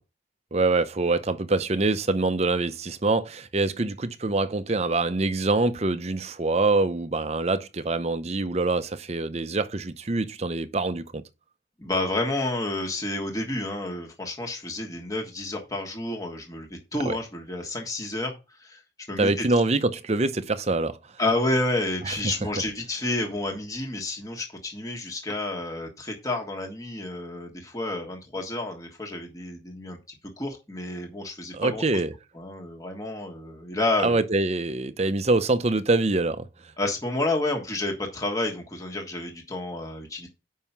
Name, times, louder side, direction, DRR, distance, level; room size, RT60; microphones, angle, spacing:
voice 1, 0.5-11.2 17.1-17.2 19.2-21.0 22.1-22.2 31.5-32.1 34.0-36.5, right 2 dB, 35° right, 0.6 m, -25 dB
voice 2, 11.8-18.3 18.6-18.8 19.1-19.4 21.2-31.8 32.3-34.2 36.8-40.3, left 2 dB, 20° left, 1.4 m, -30 dB
7.3 x 5.6 x 5.9 m
head